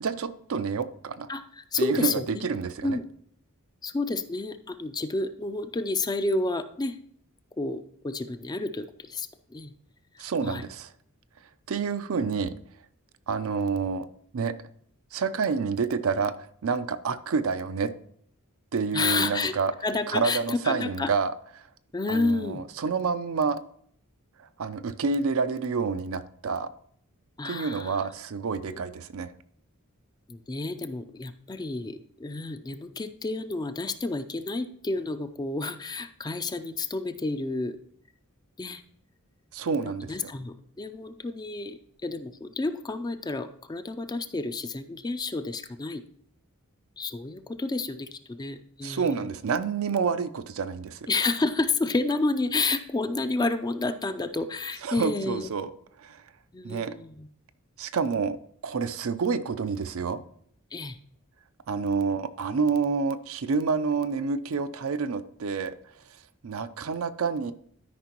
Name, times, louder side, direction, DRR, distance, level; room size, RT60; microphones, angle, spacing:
voice 1, 0.0-1.3 1.8-3.0 10.2-10.9 11.7-12.5 13.3-14.1 14.3-14.5 15.1-16.3 16.6-17.9 18.7-19.7 20.1-21.3 22.1-23.6 24.4-26.7 27.4-29.3 39.5-40.3 48.8-51.1 54.8-55.7 56.0-56.2 56.6-56.9 57.8-58.4 58.6-60.2 61.7-65.7 66.4-67.5, right 5 dB, 65° right, 11 dB, 0.5 m, -28 dB
voice 2, 1.3-2.5 2.8-3.0 3.8-7.0 7.6-9.7 10.4-10.6 18.9-19.5 19.8-21.1 21.9-22.6 27.4-28.0 28.7-28.9 30.3-37.8 38.6-38.8 39.8-46.0 47.0-49.1 51.1-55.5 56.5-57.3 60.7-61.0, left 3 dB, 20° left, 10 dB, 0.4 m, -30 dB
12.5 x 5.2 x 2.9 m, 0.65 s
head